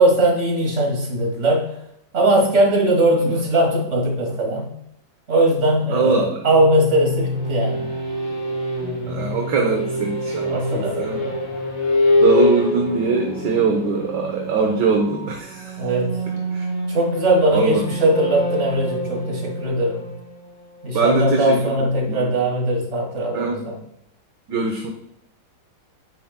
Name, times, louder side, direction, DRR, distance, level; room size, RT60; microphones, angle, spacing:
voice 1, 0.0-1.8 2.1-4.7 5.3-7.9 10.5-11.4 15.8-16.2 16.9-20.1 20.8-23.8, right 1 dB, 35° right, -1 dB, 2.4 m, -20 dB
voice 2, 5.9-6.4 8.8-11.2 12.2-15.8 16.5-16.7 17.5-17.8 20.9-21.6 22.1-22.3 23.3-23.6 24.5-24.9, right 4 dB, 60° right, 2 dB, 1.5 m, -22 dB
sound 1, 6.4-21.1, left 1 dB, 70° left, 3.1 m, -25 dB
9.7 x 9.5 x 2.2 m, 0.72 s
omnidirectional pair, 2.3 m